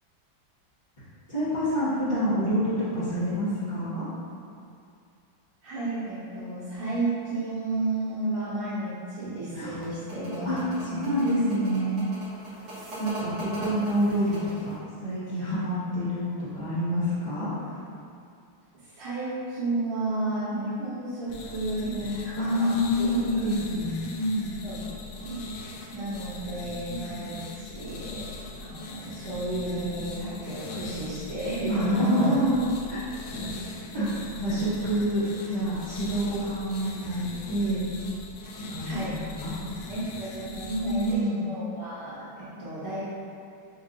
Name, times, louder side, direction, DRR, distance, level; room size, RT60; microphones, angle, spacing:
voice 1, 1.3-4.1 9.5-9.8 10.4-12.0 13.0-17.7 22.4-24.5 31.7-32.6 32.9-33.1 33.9-34.1 34.4-37.8 38.7-39.7 40.7-41.4, equal, 25° left, -18 dB, 1.2 m, -27 dB
voice 2, 5.6-10.5 10.8-11.1 13.6-13.7 18.7-22.7 23.0-23.1 24.6-24.9 25.2-28.2 28.6-32.4 33.3-33.5 33.9-34.1 35.0-35.1 38.8-39.2 39.9-43.0, right 2 dB, 85° right, -17 dB, 2.2 m, -32 dB
sound 1, 9.6-14.8, right 1 dB, 50° right, 1.0 m, -39 dB
sound 2, 21.3-41.1, left 3 dB, 75° left, 1.2 m, -40 dB
5.3 x 3.0 x 2.4 m, 2.4 s
omnidirectional pair, 2.2 m